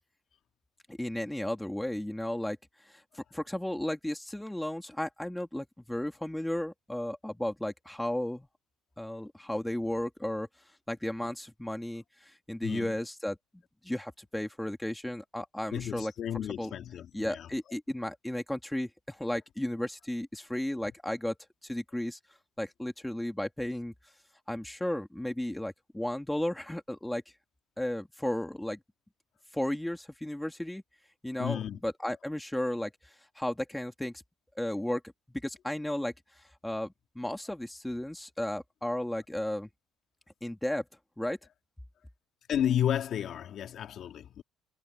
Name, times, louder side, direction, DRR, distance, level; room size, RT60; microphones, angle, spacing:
voice 1, 0.9-2.6 2.9-8.5 9.0-10.5 10.9-13.4 13.8-16.1 16.6-16.7 17.1-21.3 21.6-22.2 22.6-23.9 24.5-27.2 27.8-28.8 29.5-30.8 31.2-32.9 33.4-34.2 34.6-35.0 35.3-36.1 36.6-39.7 40.4-40.9 41.2-41.4, left 1 dB, 5° left, 2.3 m, -34 dB
voice 2, 12.6-12.9 15.7-17.5 31.4-31.8 42.5-44.4, left 10 dB, 45° left, 2.1 m, -32 dB
cardioid pair, 160°, 0 cm